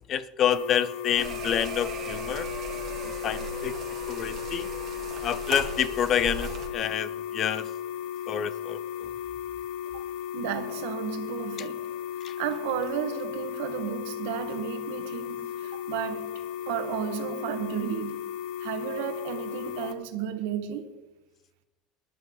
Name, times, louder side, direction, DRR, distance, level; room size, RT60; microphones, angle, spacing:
voice 1, 0.1-2.5 3.0-3.8 4.1-4.7 5.2-7.7 8.3-9.1 12.2-12.3, left 9 dB, 30° left, 0.6 m, -28 dB
sound 1, 0.5-19.9, left 10 dB, 90° left, 1.3 m, -35 dB
sound 2, 1.2-6.7, right 5 dB, 30° right, 2.0 m, -38 dB
voice 2, 10.3-11.9 12.4-18.3 18.6-20.9, right 9 dB, 85° right, 1.6 m, -33 dB
19.5 x 11.5 x 4.0 m
cardioid pair, 175°, 0 cm